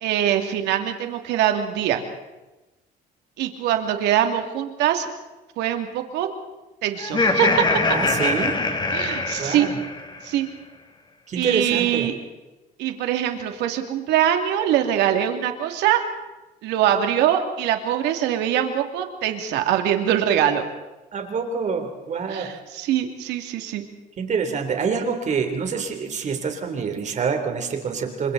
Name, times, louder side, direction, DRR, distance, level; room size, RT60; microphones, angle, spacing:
voice 1, 0.0-2.0 3.4-5.1 5.6-6.3 6.8-7.6 8.9-9.7 10.2-10.5 11.4-12.1 12.8-16.0 16.6-20.6 22.3-23.8, right 10 dB, 90° right, 5 dB, 2.6 m, -23 dB
Laughter, 7.0-10.2, left 3 dB, 25° left, 2.4 m, -23 dB
voice 2, 7.9-8.6 9.4-9.8 11.3-12.1 21.1-22.5 24.2-28.3, right 5 dB, 45° right, 5 dB, 3.5 m, -26 dB
29.0 x 25.5 x 4.1 m, 1.1 s
cardioid pair, 110°, 17 cm